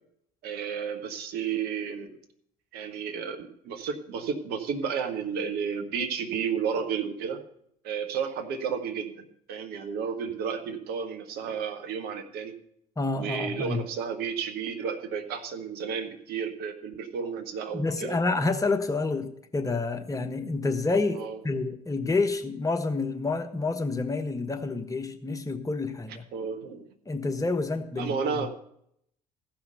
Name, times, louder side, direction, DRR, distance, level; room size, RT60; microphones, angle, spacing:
voice 1, 0.4-2.2 2.7-7.4 7.8-12.6 13.1-18.2 21.1-21.4 26.3-26.9 28.0-28.5, right 6 dB, 55° right, 6 dB, 1.4 m, -32 dB
voice 2, 13.0-13.8 17.7-26.2 27.1-28.1, left 3 dB, 20° left, 6 dB, 1.2 m, -28 dB
15.0 x 5.7 x 6.5 m, 0.71 s
figure-of-eight pair, 55°, 19 cm